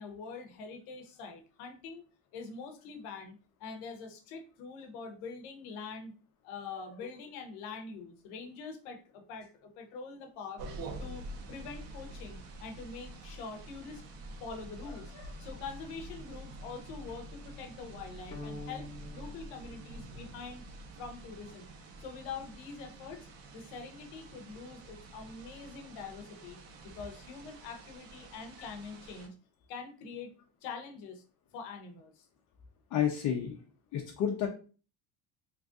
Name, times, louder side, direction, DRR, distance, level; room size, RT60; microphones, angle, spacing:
voice 1, 0.0-2.0 2.3-6.2 6.4-10.6 11.0-14.0 14.4-20.6 21.0-21.7 22.0-23.3 23.5-26.6 26.8-29.3 29.7-30.3 30.6-31.2 31.5-32.3, left 5 dB, 80° left, 7 dB, 0.9 m, -44 dB
sound 1, 10.6-29.3, right 2 dB, 65° right, 1.0 m, -47 dB
sound 2, 18.3-20.6, left 2 dB, 20° left, 0.9 m, -47 dB
voice 2, 32.9-33.5 33.9-34.5, left 9 dB, 50° left, 0 dB, 0.7 m, -30 dB
3.2 x 2.5 x 3.6 m, 0.37 s
cardioid pair, 125°, 39 cm